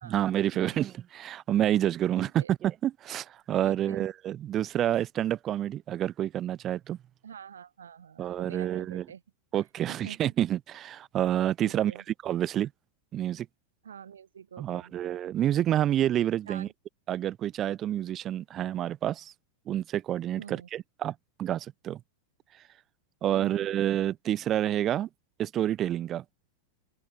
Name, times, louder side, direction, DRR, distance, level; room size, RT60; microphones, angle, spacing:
voice 1, 0.0-7.0 8.2-9.1 9.5-11.9 12.2-12.7 13.1-13.5 14.6-16.7 17.1-19.3 19.7-22.0 23.2-25.1 25.4-26.2, right 11 dB, 30° right, 0.5 m, -28 dB
voice 2, 0.5-0.8 2.1-2.6 3.6-4.1 7.2-9.2 9.9-10.3 11.6-12.0 13.8-14.9 16.4-16.7 20.4-20.7, right 8 dB, 70° right, 2.2 m, -46 dB
open air
figure-of-eight pair, 90°, 0 cm